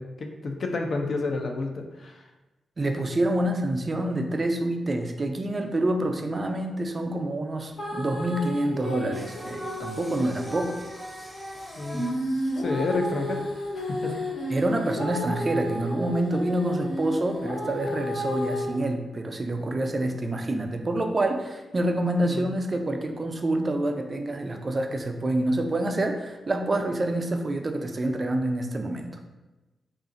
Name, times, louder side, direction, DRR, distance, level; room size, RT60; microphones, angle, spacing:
voice 1, 0.0-2.3 11.8-13.4 13.7-14.2 22.2-22.5, left 3 dB, 60° left, 3 dB, 0.4 m, -30 dB
voice 2, 2.8-10.8 14.5-29.2, right 1 dB, 40° right, 5 dB, 0.3 m, -27 dB
sound 1, 7.8-10.4 11.9-18.8, equal, 75° left, 1.3 m, -32 dB
Singing, 9.1-14.1, equal, 5° left, 0.6 m, -41 dB
2.8 x 2.4 x 2.5 m, 1.1 s
supercardioid pair, 55°, 0 cm